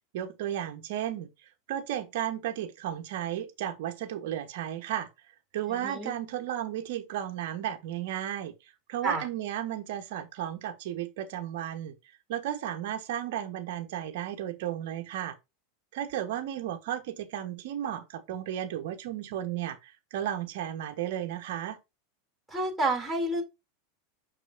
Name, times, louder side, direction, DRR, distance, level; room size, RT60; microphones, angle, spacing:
voice 1, 0.1-1.3 1.7-5.1 5.5-8.5 8.9-11.9 12.3-15.4 15.9-21.8, right 11 dB, 60° right, 1.4 m, -34 dB
voice 2, 5.7-6.1 9.0-9.2 22.5-23.4, right 2 dB, 5° right, 3.5 m, -29 dB
6.2 x 6.2 x 2.8 m
figure-of-eight pair, 85°, 0 cm